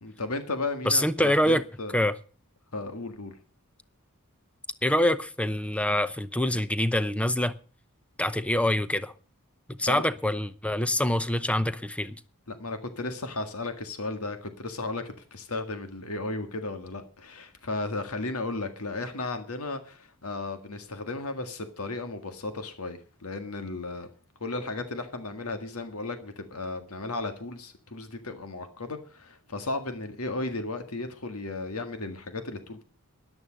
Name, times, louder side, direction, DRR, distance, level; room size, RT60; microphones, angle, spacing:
voice 1, 0.0-2.0 2.7-3.4 9.8-10.1 12.5-24.1 24.4-32.8, left 2 dB, 90° left, 1.8 m, -35 dB
voice 2, 0.8-1.6 1.9-2.1 4.8-7.5 8.2-9.1 9.7-12.2, left 1 dB, 5° left, 0.7 m, -25 dB
13.5 x 11.0 x 5.2 m
head